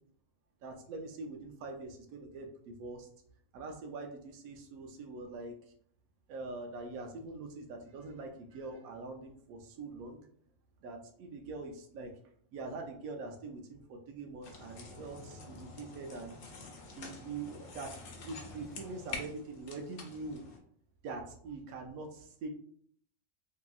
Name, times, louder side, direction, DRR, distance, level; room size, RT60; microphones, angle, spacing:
voice 1, 0.6-3.1 3.5-5.5 6.3-10.3 10.8-12.1 12.5-16.4 16.9-17.9 18.2-20.4 21.0-22.5, right 3 dB, 90° right, 3 dB, 1.0 m, -43 dB
sound 1, 14.4-20.6, left 3 dB, 75° left, 1.0 m, -47 dB
2.8 x 2.7 x 2.3 m, 0.62 s
omnidirectional pair, 1.4 m